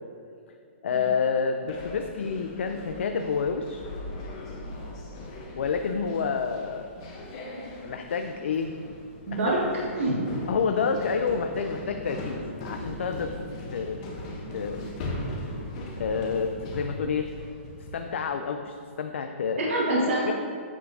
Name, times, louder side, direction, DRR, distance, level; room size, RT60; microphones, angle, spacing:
voice 1, 0.8-3.8 5.6-6.9 7.8-8.8 9.3-9.4 10.5-13.3 13.7-14.1 14.5-14.8 16.0-17.3 17.9-19.6 20.3-20.4, left 5 dB, 65° left, 6 dB, 0.4 m, -28 dB
sound 1, 1.7-18.2, left 1 dB, 25° left, 0.7 m, -39 dB
voice 2, 9.3-9.6 9.9-10.3 19.6-20.3, right 2 dB, 65° right, -6 dB, 1.5 m, -25 dB
8.3 x 5.9 x 2.6 m, 2.3 s
hypercardioid pair, 180°, 7 cm